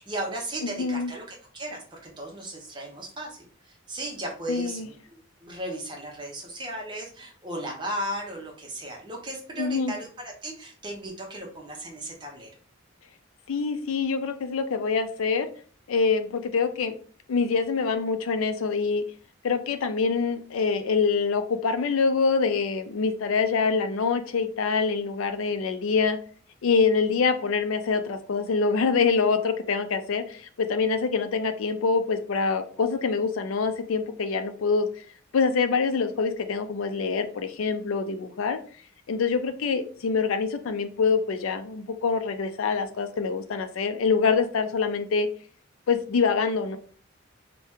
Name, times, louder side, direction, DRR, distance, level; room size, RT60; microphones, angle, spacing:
voice 1, 0.0-12.5, right 1 dB, 20° right, 0 dB, 0.7 m, -36 dB
voice 2, 0.6-1.1 4.5-4.9 9.6-9.9 13.5-15.5 15.9-17.0 17.3-19.0 19.4-26.2 26.6-34.9 35.3-38.6 39.1-45.3 45.9-46.8, left 5 dB, 80° left, 9 dB, 0.4 m, -25 dB
2.7 x 2.2 x 3.5 m, 0.43 s
head